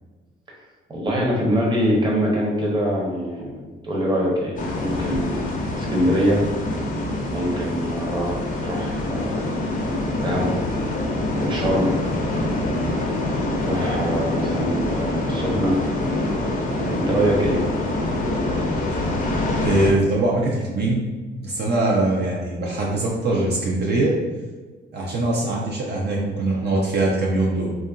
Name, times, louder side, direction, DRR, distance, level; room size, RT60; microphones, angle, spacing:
voice 1, 0.9-5.5 5.8-6.4 7.3-9.6 10.2-10.5 11.3-11.9 13.6-15.8 16.8-17.7, equal, 25° right, -3 dB, 0.8 m, -24 dB
sound 1, 4.6-19.9, left 1 dB, 45° left, 0.5 m, -25 dB
voice 2, 19.6-21.1 21.4-24.2 24.9-27.8, right 2 dB, 55° right, -3 dB, 0.5 m, -22 dB
2.8 x 2.5 x 2.3 m, 1.4 s
cardioid pair, 90°, 20 cm